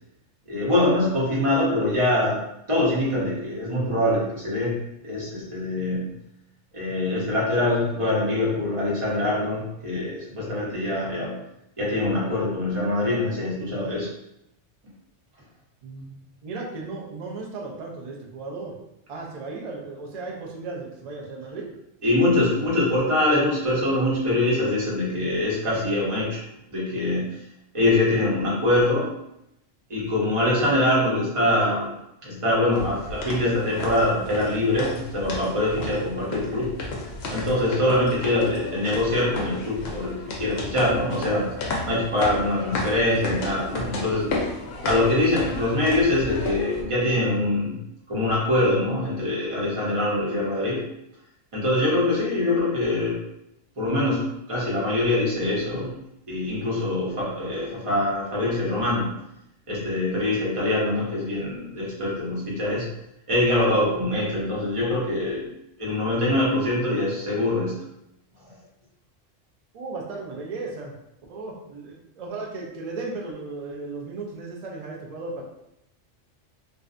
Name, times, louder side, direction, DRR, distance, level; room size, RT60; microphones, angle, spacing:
voice 1, 0.5-2.4 2.7-4.7 5.0-6.1 6.7-11.4 11.8-14.1 22.0-26.4 26.7-27.4 27.7-29.1 29.9-31.9 32.2-36.7 37.3-41.5 41.8-44.3 44.8-47.8 48.1-50.8 51.5-53.2 53.8-55.9 56.3-59.1 59.7-62.9 63.3-65.4 65.8-67.8, left 1 dB, 30° right, -6 dB, 0.8 m, -24 dB
voice 2, 15.8-18.8 19.1-21.7 69.7-70.9 71.3-75.4, right 3 dB, 75° right, -1 dB, 0.3 m, -35 dB
sound 1, 32.7-46.8, left 2 dB, 65° left, 0.7 m, -33 dB
2.6 x 2.1 x 2.4 m, 0.82 s
omnidirectional pair, 1.3 m